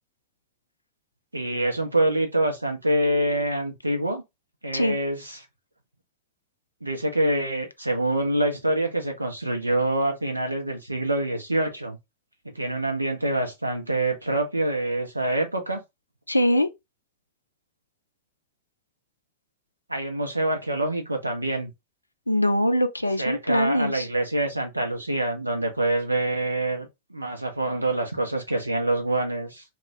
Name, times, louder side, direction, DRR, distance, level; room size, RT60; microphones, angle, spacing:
voice 1, 1.3-4.2 4.6-5.4 6.8-12.0 12.5-15.8 19.9-21.7 23.2-29.6, right 1 dB, 85° right, 0.7 m, -26 dB
voice 2, 16.3-16.7 22.3-24.1, equal, 85° left, 0.3 m, -22 dB
2.3 x 2.0 x 3.3 m
figure-of-eight pair, 90°, 0 cm